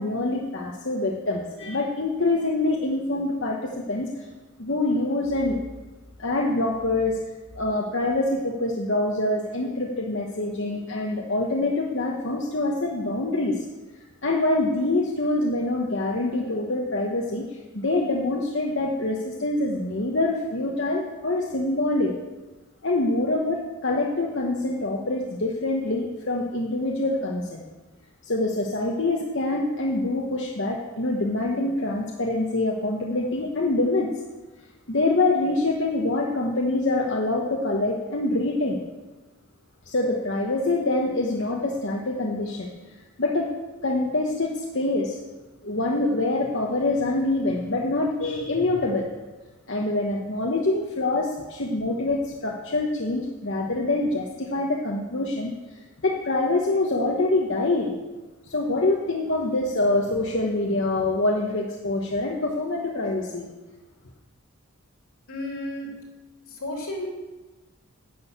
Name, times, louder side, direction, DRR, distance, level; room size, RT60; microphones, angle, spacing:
voice 1, 0.0-4.1 4.6-5.6 6.2-7.2 7.5-13.6 14.2-22.1 22.8-27.6 28.2-34.1 34.9-38.8 39.9-42.7 43.2-43.5 43.8-45.2 45.6-49.1 49.7-55.5 56.0-57.9 58.5-63.5, left 2 dB, 55° left, 0 dB, 1.1 m, -25 dB
voice 2, 65.3-65.9 66.6-67.1, left 1 dB, 90° left, 0 dB, 3.1 m, -32 dB
11.5 x 6.3 x 8.2 m, 1.2 s
head